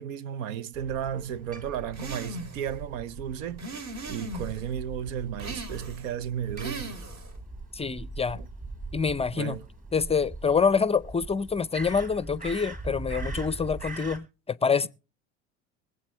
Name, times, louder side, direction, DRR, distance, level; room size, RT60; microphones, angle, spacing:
voice 1, 0.0-3.6 4.1-7.0 8.3-8.5 9.3-9.6, right 9 dB, 75° right, 0.9 m, -34 dB
Crow, 0.7-14.2, right 2 dB, 20° right, 3.8 m, -41 dB
sound 1, 1.9-2.7 3.6-4.6 5.4-6.1 6.6-7.4, right 2 dB, 40° right, 3.1 m, -38 dB
voice 2, 7.7-8.4 8.9-9.6 9.9-14.9, left 5 dB, 15° left, 0.5 m, -26 dB
23.5 x 8.1 x 3.1 m
hypercardioid pair, 80°, 39 cm